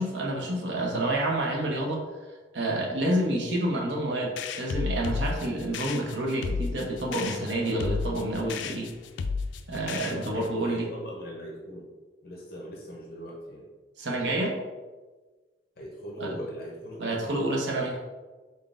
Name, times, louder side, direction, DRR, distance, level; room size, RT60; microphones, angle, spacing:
voice 1, 0.0-2.0 2.5-8.9 9.7-10.8 14.0-14.6 16.2-16.3 17.0-18.0, right 1 dB, 75° right, 0 dB, 0.7 m, -28 dB
sound 1, 4.4-10.6, left 4 dB, 80° left, 0.3 m, -33 dB
voice 2, 10.3-11.9 12.2-13.7 15.8-17.5, equal, 55° left, -2 dB, 0.7 m, -40 dB
3.8 x 3.8 x 2.4 m, 1.3 s
head